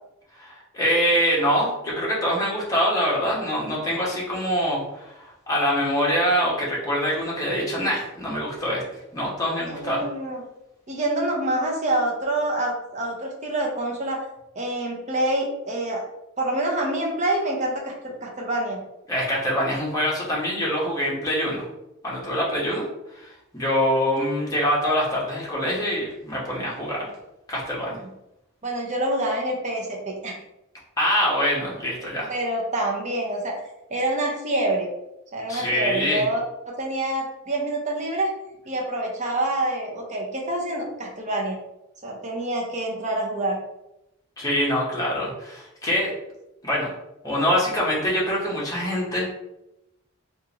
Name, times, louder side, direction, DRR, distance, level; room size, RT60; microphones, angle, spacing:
voice 1, 0.4-8.8 9.1-10.0 19.1-21.7 22.0-22.8 23.1-27.1 27.5-28.0 31.0-32.3 35.5-36.2 44.4-46.1 46.6-46.9 47.2-49.3, equal, 15° left, -5 dB, 1.0 m, -24 dB
voice 2, 9.7-10.4 10.9-14.2 14.6-16.0 16.4-18.8 28.6-30.4 32.3-33.6 33.9-34.9 35.3-38.3 38.7-41.6 42.0-43.6, right 1 dB, 35° right, -1 dB, 0.7 m, -26 dB
3.6 x 2.6 x 2.9 m, 0.89 s
head